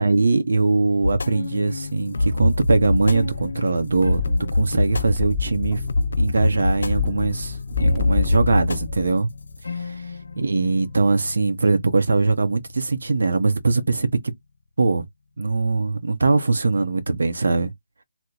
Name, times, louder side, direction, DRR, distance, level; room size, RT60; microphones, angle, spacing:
voice 1, 0.0-4.2 4.5-5.8 6.2-9.3 9.7-10.0 10.4-14.1 14.8-15.1 15.4-17.7, right 3 dB, 70° right, 0.6 m, -21 dB
sound 1, 1.0-13.6, left 2 dB, 70° left, 0.4 m, -27 dB
sound 2, 2.2-3.6 3.9-9.2 9.5-9.6, left 5 dB, 5° right, 0.9 m, -29 dB
2.9 x 2.0 x 3.8 m
figure-of-eight pair, 155°, 0 cm